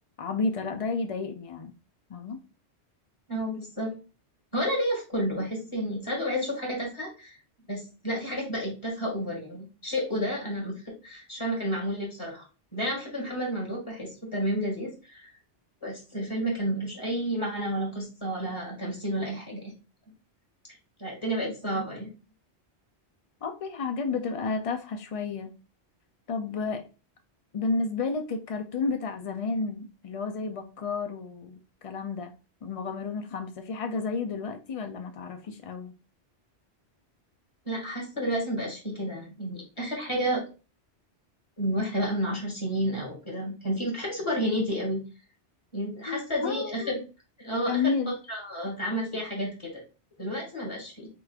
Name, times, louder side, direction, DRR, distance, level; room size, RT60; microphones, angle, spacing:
voice 1, 0.2-1.7 2.1-2.4 21.7-21.8 23.4-25.5 26.3-26.8 27.5-32.3 32.6-35.9 46.1-46.9 47.7-48.2, left 4 dB, 60° left, 6 dB, 0.3 m, -31 dB
voice 2, 3.3-3.9 4.5-7.4 7.7-12.5 12.7-15.3 15.8-19.7 21.0-22.1 37.7-40.4 41.6-45.0 45.7-47.0 47.4-48.0 48.3-49.8 50.2-51.1, equal, 25° left, -2 dB, 1.8 m, -31 dB
4.5 x 3.8 x 2.4 m, 0.32 s
omnidirectional pair, 1.2 m